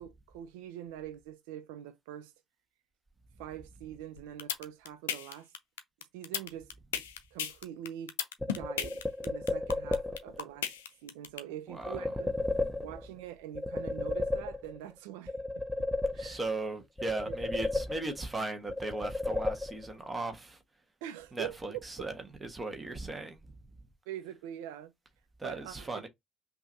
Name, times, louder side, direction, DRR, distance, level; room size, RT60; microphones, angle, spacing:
voice 1, 0.0-2.3 3.4-5.5 6.1-7.0 7.3-8.1 8.5-10.7 11.0-12.4 12.8-15.3 15.8-15.9 16.1-16.4 17.3-17.4 21.0-21.8 24.1-24.9 25.4-26.0, right 11 dB, 75° right, 0.4 m, -44 dB
sound 1, 4.2-11.4, left 9 dB, 80° left, 0.5 m, -34 dB
sound 2, 8.4-10.4 11.8-13.2 13.5-14.9 15.3-16.6 17.0-18.3 18.7-20.1, left 2 dB, ahead, 0.8 m, -33 dB
voice 2, 11.7-12.0 12.5-12.8 16.2-20.6 21.3-22.1 22.4-23.4 25.4-26.1, right 2 dB, 25° right, 1.4 m, -37 dB
5.4 x 2.8 x 2.7 m
figure-of-eight pair, 50°, 0 cm